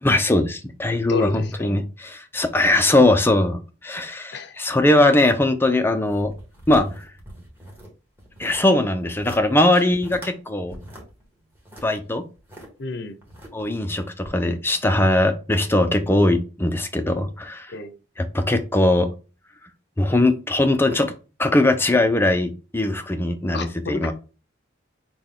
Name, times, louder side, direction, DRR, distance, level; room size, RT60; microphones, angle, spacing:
voice 1, 0.0-6.3 6.7-7.1 8.4-10.8 11.8-12.2 13.5-17.7 18.2-19.1 20.0-21.1 21.4-24.1, left 1 dB, 10° left, 0.5 m, -20 dB
voice 2, 1.1-1.8 4.3-4.6 12.8-13.2 17.7-17.9 23.5-24.1, left 3 dB, 55° left, 0.7 m, -31 dB
sound 1, 6.0-7.9 8.2-8.7 9.0-9.4 9.7-10.3 10.7-12.7 13.2-13.8 14.2-14.3, right 1 dB, 10° right, 1.3 m, -41 dB
6.2 x 2.3 x 3.7 m
head